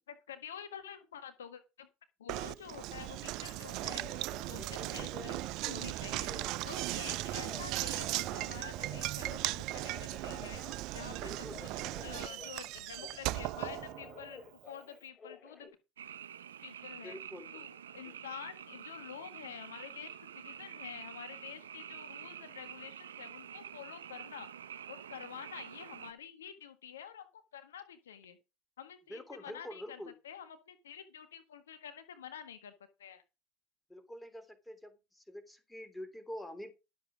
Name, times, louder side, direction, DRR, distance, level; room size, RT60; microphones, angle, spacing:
voice 1, 0.0-1.9 2.2-4.2 4.5-6.3 6.6-10.6 10.9-15.7 16.6-17.2 17.5-24.5 24.9-28.4 28.8-32.7 33.0-33.2, left 8 dB, 75° left, 10 dB, 1.5 m, -48 dB
Knock, 2.3-14.4, right 18 dB, 55° right, 0.5 m, -38 dB
Telephone, 3.2-5.7 6.1-7.6 7.9-9.5 9.8-13.2 13.5-15.7, left 5 dB, 25° left, 4.6 m, -52 dB
voice 2, 11.2-12.3 17.0-17.7 18.0-18.1 29.1-30.1 33.9-36.7, equal, 5° left, 9 dB, 3.1 m, -47 dB
Frog, 16.0-26.1, right 9 dB, 80° right, 0.8 m, -48 dB
12.5 x 7.5 x 5.0 m, 0.27 s
figure-of-eight pair, 75°, 0 cm